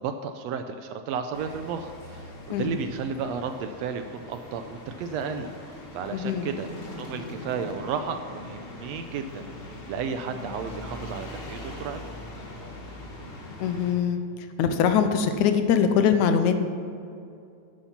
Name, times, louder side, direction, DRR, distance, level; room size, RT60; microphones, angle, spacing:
voice 1, 0.0-5.5 5.9-6.7 7.0-9.4 9.9-12.0, right 6 dB, 80° right, 8 dB, 1.6 m, -33 dB
sound 1, 1.3-13.9, left 1 dB, 30° left, 1.2 m, -41 dB
voice 2, 6.1-6.5 13.6-14.2 14.6-16.6, left 7 dB, 80° left, 8 dB, 2.2 m, -22 dB
11.5 x 8.6 x 5.8 m, 2.5 s
omnidirectional pair, 3.4 m